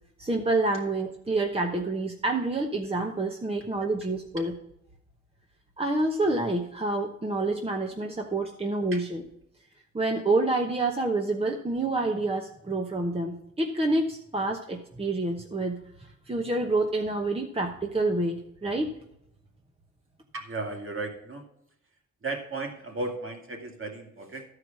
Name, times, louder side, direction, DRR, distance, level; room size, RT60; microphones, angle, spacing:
voice 1, 0.2-4.5 5.8-9.2 9.9-15.8 16.3-18.9, right 2 dB, 20° right, 2 dB, 1.0 m, -28 dB
voice 2, 20.3-21.4 22.2-24.6, right 2 dB, 45° right, 2 dB, 2.3 m, -35 dB
12.5 x 4.9 x 6.1 m, 0.76 s
cardioid pair, 90°, 29 cm